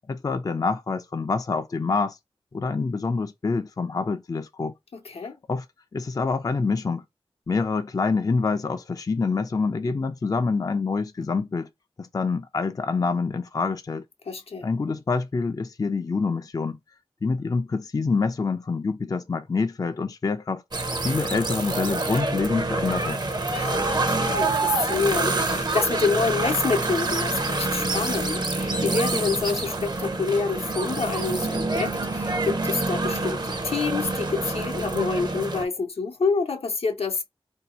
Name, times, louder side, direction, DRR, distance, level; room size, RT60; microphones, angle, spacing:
voice 1, 0.1-2.2 2.5-4.7 5.5-5.6 5.9-7.0 7.5-11.7 12.0-14.0 14.6-16.8 17.2-20.6 21.0-23.2, left 4 dB, 40° left, 0.3 m, -26 dB
voice 2, 4.9-5.4 14.3-14.7 23.5-37.2, left 4 dB, 80° left, 0.7 m, -27 dB
sound 1, 20.7-35.6, right 2 dB, 45° right, 0.6 m, -26 dB
2.7 x 2.3 x 4.1 m
wide cardioid pair, 60°, 10 cm